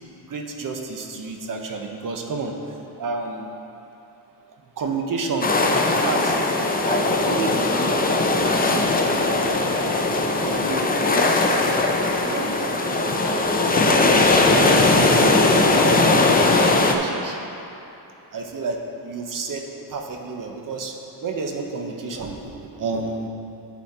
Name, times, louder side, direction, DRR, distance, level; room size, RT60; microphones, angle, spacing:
voice 1, 0.3-2.5 3.0-3.5 4.8-6.3 6.8-10.2 10.4-11.7 12.2-15.2 15.8-16.3 16.9-17.4 18.3-20.9 21.2-23.3, right 4 dB, 50° right, 3 dB, 0.9 m, -31 dB
sound 1, 5.4-16.9, left 2 dB, 20° left, 0.5 m, -19 dB
11.5 x 4.3 x 4.3 m, 2.9 s
cardioid pair, 120°, 43 cm